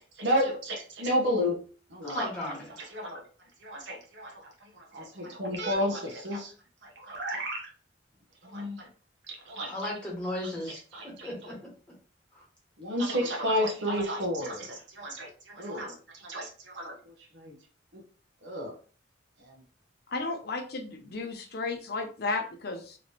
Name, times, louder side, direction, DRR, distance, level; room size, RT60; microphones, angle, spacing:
voice 1, 0.2-1.6 1.9-2.3 2.8-3.2 3.6-4.3 4.7-6.5 6.8-7.7 8.4-8.9 9.3-9.7 10.9-11.1 12.8-17.0 17.3-17.5 17.9-18.0 18.4-18.7, equal, 70° right, 0 dB, 1.0 m, -31 dB
voice 2, 2.0-2.9 9.7-10.8 11.2-11.3 12.3-12.4, left 1 dB, 5° left, -5 dB, 1.5 m, -35 dB
voice 3, 20.1-23.0, left 3 dB, 55° left, 5 dB, 0.6 m, -33 dB
3.2 x 2.9 x 2.8 m, 0.39 s
head